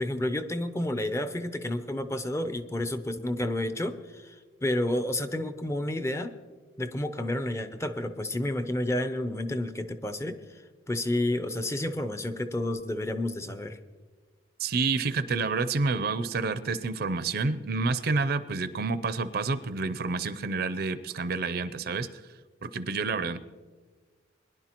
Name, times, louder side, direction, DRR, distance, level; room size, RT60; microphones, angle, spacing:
voice 1, 0.0-6.4 6.8-10.6 10.9-13.8, left 1 dB, 15° left, 10 dB, 0.5 m, -30 dB
voice 2, 14.6-22.1 22.6-23.4, right 4 dB, 55° right, 12 dB, 0.5 m, -29 dB
21.5 x 11.0 x 3.0 m, 1.4 s
head